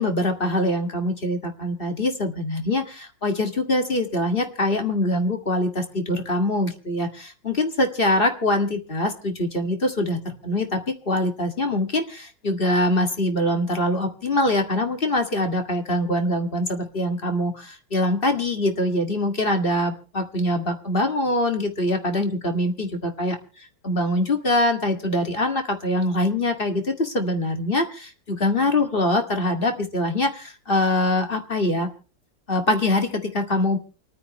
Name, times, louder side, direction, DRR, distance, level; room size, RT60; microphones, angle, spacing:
voice 1, 0.0-23.4 23.8-31.9 32.5-33.8, left 1 dB, 30° left, 5 dB, 2.2 m, -23 dB
28.5 x 9.6 x 3.1 m, 0.37 s
omnidirectional pair, 2.0 m